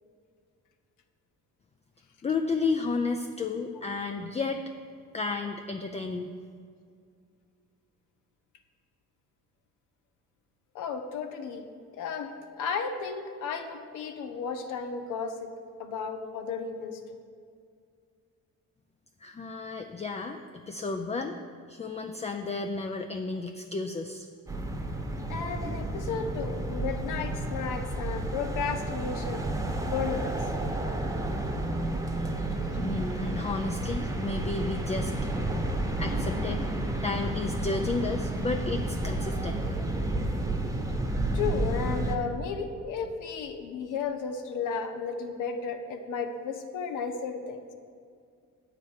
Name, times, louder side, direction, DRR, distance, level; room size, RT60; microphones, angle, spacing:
voice 1, 2.2-4.6 5.1-6.3 19.2-21.3 21.7-24.3 32.2-32.3 32.7-35.2 36.0-39.6, left 3 dB, 20° left, 6 dB, 0.4 m, -32 dB
voice 2, 10.7-11.6 11.9-15.5 15.8-17.2 25.3-29.4 29.9-30.4 41.3-47.6, left 5 dB, 85° left, 6 dB, 0.8 m, -34 dB
sound 1, 24.5-42.2, right 1 dB, 10° right, 1.0 m, -31 dB
7.8 x 4.9 x 7.2 m, 2.2 s
cardioid pair, 90°, 30 cm